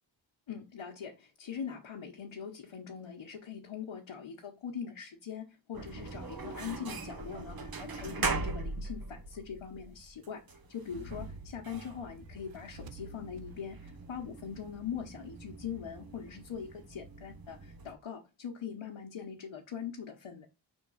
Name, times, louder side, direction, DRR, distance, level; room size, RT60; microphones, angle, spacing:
voice 1, 0.5-10.4 10.7-20.5, left 7 dB, 90° left, 1.1 m, -42 dB
sound 1, 5.7-17.9, right 3 dB, 50° right, 1.0 m, -41 dB
sound 2, 12.3-15.6, right 4 dB, 70° right, 0.7 m, -56 dB
5.5 x 3.6 x 5.6 m
wide cardioid pair, 80°, 47 cm